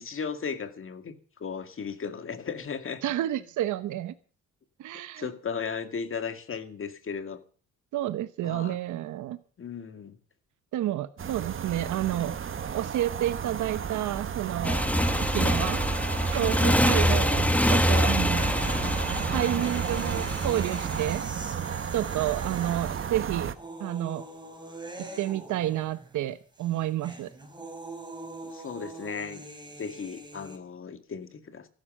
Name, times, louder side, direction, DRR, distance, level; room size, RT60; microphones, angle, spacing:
voice 1, 0.0-3.0 5.2-7.4 8.4-8.8 9.6-10.2 16.5-17.0 28.4-29.4 29.8-31.7, left 6 dB, 45° left, 9 dB, 2.1 m, -36 dB
voice 2, 3.0-4.1 4.8-5.3 7.9-9.4 10.7-12.3 12.7-14.8 15.2-15.8 16.3-18.5 19.3-21.2 21.9-23.5 23.8-24.2 25.0-27.3, right 13 dB, 80° right, 12 dB, 1.0 m, -30 dB
sound 1, 11.2-23.5, right 8 dB, 45° right, 1.2 m, -33 dB
Motorcycle, 14.6-21.0, equal, 5° left, 1.4 m, -25 dB
sound 2, 18.3-26.3 26.5-30.6, right 2 dB, 15° right, 4.8 m, -43 dB
14.5 x 12.0 x 6.6 m, 0.41 s
cardioid pair, 90°, 30 cm